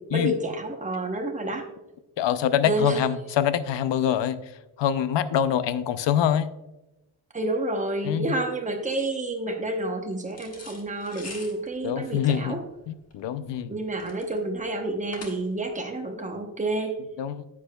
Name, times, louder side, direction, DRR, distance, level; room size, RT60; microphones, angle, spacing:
voice 1, 0.1-1.7 2.6-3.0 7.3-12.6 13.7-17.0, right 2 dB, 15° right, 3 dB, 0.8 m, -29 dB
voice 2, 2.2-4.4 4.8-6.5 8.0-8.3 11.8-12.6 12.9-13.7 17.2-17.5, left 9 dB, 60° left, 13 dB, 0.6 m, -25 dB
sound 1, 10.3-15.7, left 3 dB, 30° left, 1.2 m, -45 dB
9.9 x 8.4 x 2.3 m, 0.98 s
wide cardioid pair, 160°, 48 cm